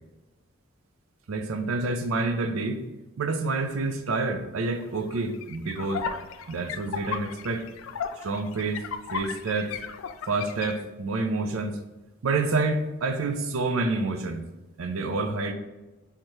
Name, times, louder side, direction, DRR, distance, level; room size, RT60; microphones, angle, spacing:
voice 1, 1.3-2.8 3.2-6.1 6.5-7.7 8.2-8.8 9.1-9.7 10.3-11.8 12.2-14.4 14.8-15.5, right 3 dB, 75° right, 7 dB, 0.5 m, -28 dB
sound 1, 4.8-10.8, left 6 dB, 70° left, 0.3 m, -35 dB
4.4 x 3.6 x 3.1 m, 1.1 s
head